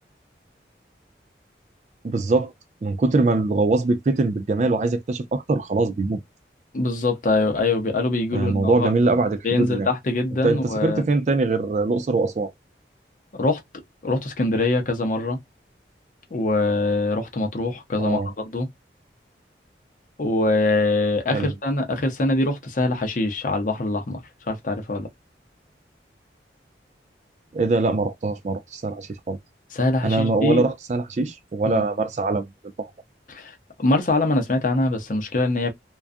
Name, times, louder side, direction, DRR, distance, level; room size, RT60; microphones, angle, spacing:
voice 1, 2.0-2.5 2.8-6.2 8.3-9.9 10.4-12.5 18.0-18.3 21.3-21.5 27.5-29.4 30.0-32.5 32.8-32.9, right 3 dB, 40° right, 0.4 m, -22 dB
voice 2, 6.7-8.9 9.4-11.0 13.3-13.6 14.0-15.4 16.3-18.7 20.2-25.1 29.7-30.7 31.6-31.8 33.3-35.7, left 2 dB, 45° left, 0.6 m, -23 dB
2.4 x 2.2 x 2.4 m
head